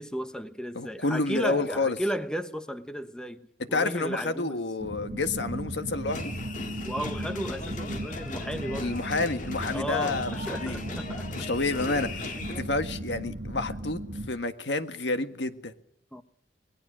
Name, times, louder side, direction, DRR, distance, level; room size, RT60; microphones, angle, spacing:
voice 1, 0.0-3.4 3.7-4.6 6.8-9.0 9.7-11.5 16.1-16.2, equal, 5° left, 1.2 m, -34 dB
voice 2, 0.7-2.0 3.7-6.3 8.8-10.8 11.3-14.0 14.3-15.7, left 3 dB, 80° left, 1.6 m, -29 dB
sound 1, 4.8-14.3, right 1 dB, 55° right, 2.4 m, -37 dB
sound 2, 6.1-12.6, left 3 dB, 45° left, 2.4 m, -39 dB
26.0 x 20.5 x 6.3 m
head